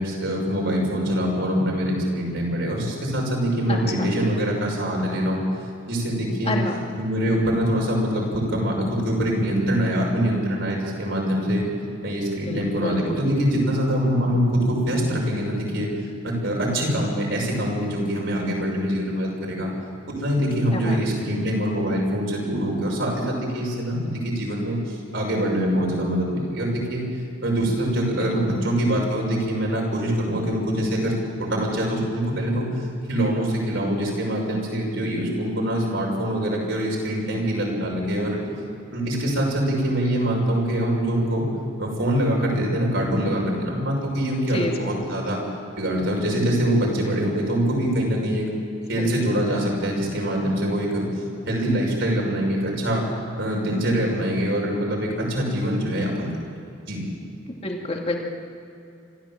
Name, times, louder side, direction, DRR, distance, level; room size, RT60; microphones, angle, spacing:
voice 1, 0.0-5.4 5.8-6.6 7.0-11.7 12.0-15.9 16.2-19.7 20.1-27.0 27.4-31.1 31.4-32.7 33.1-38.4 38.9-41.5 41.8-45.4 45.8-48.4 48.9-51.1 51.5-53.1 53.4-56.3 56.9-57.0, equal, 65° right, -1 dB, 6.1 m, -24 dB
voice 2, 3.7-4.1 6.5-6.8 12.5-13.1 20.7-21.0 28.2-28.6 44.5-44.9 49.0-49.1 57.6-58.2, left 2 dB, 30° left, 0 dB, 2.5 m, -28 dB
26.0 x 14.0 x 7.5 m, 2.7 s
head